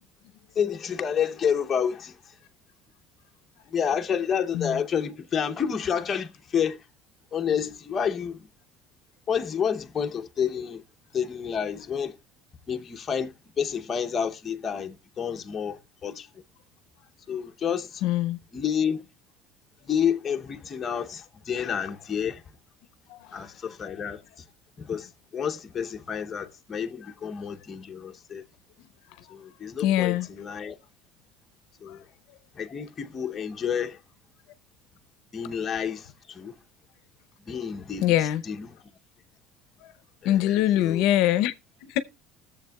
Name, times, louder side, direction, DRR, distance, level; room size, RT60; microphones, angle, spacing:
voice 1, 0.6-2.2 3.7-6.8 7.3-8.5 9.3-10.8 11.1-12.1 12.7-16.3 17.3-18.0 18.5-19.0 19.9-22.4 23.3-24.2 24.8-28.4 29.3-30.8 31.8-32.0 32.5-34.0 35.3-36.5 37.5-38.1 38.4-38.7 40.2-41.1, left 7 dB, 30° left, 0.7 m, -29 dB
voice 2, 18.0-18.4 23.1-23.3 29.8-30.3 31.9-32.0 38.0-38.4 40.2-41.5 41.8-42.0, left 13 dB, 75° left, 0.6 m, -23 dB
20.0 x 7.0 x 2.3 m
cardioid pair, 135°, 0 cm